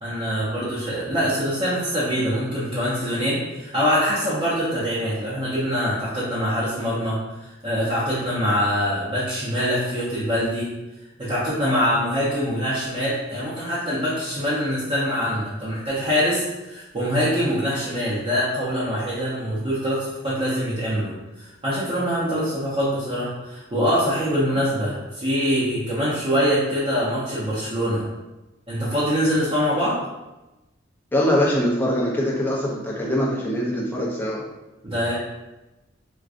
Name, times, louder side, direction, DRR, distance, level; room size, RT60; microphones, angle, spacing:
voice 1, 0.0-10.7 11.2-28.1 28.7-30.0 34.8-35.1, equal, 30° right, -10 dB, 0.7 m, -24 dB
voice 2, 31.1-34.4, equal, 10° left, -4 dB, 0.6 m, -23 dB
4.7 x 2.2 x 2.5 m, 1.0 s
head